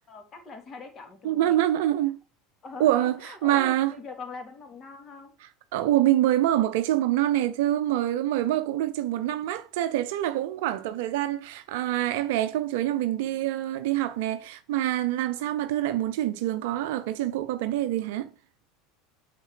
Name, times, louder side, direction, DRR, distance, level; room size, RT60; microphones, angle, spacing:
voice 1, 0.1-1.6 2.6-5.4, left 3 dB, 30° left, 2.6 m, -42 dB
voice 2, 1.2-2.2 2.8-3.9 5.7-18.3, right 13 dB, 60° right, 0.6 m, -25 dB
8.8 x 5.9 x 4.7 m
figure-of-eight pair, 75°, 0 cm